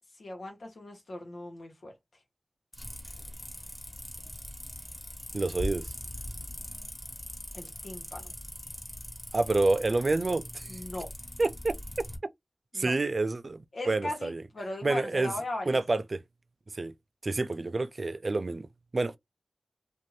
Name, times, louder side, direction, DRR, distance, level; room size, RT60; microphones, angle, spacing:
voice 1, 0.1-1.9 7.5-8.3 10.7-11.1 12.7-12.9 13.7-15.8, left 1 dB, 90° left, 1.1 m, -38 dB
sound 1, 2.7-12.2, left 1 dB, 30° left, 1.3 m, -41 dB
voice 2, 5.3-5.8 9.3-10.7 11.4-11.8 12.7-14.4 14.8-15.3 15.7-16.2 16.7-16.9 17.2-18.7 18.9-19.2, right 3 dB, 60° right, 0.3 m, -28 dB
2.6 x 2.5 x 3.1 m
cardioid pair, 45°, 0 cm